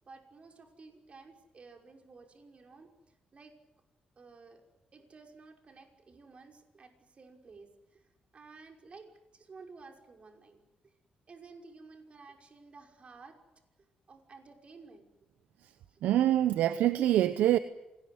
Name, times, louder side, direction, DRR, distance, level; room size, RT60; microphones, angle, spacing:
voice 1, 0.0-3.5 4.2-4.6 4.9-10.9 11.3-13.4 14.1-15.1 15.9-16.0 16.4-16.6, right 4 dB, 45° right, 3 dB, 5.7 m, -54 dB
voice 2, 16.0-17.6, right 12 dB, 85° right, 12 dB, 0.9 m, -25 dB
27.0 x 20.0 x 9.7 m, 0.99 s
cardioid pair, 70°, 3 cm